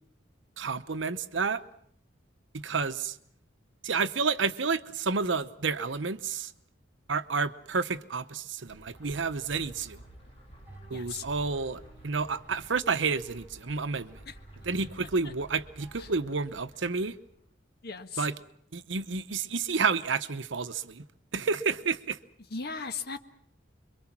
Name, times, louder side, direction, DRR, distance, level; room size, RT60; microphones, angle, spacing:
voice 1, 0.6-1.6 2.5-3.2 3.8-6.5 7.1-10.0 10.9-14.2 14.6-17.2 18.2-18.3 18.7-21.1 21.3-22.2, right 4 dB, 70° right, 0.9 m, -30 dB
sound 1, 8.7-16.1, right 1 dB, 10° right, 6.0 m, -53 dB
sound 2, 8.9-17.5, right 1 dB, 30° left, 3.9 m, -54 dB
voice 2, 10.9-11.2 14.2-14.4 16.0-16.1 17.8-18.3 22.5-23.2, left 5 dB, 55° left, 1.5 m, -37 dB
26.0 x 23.5 x 6.0 m
head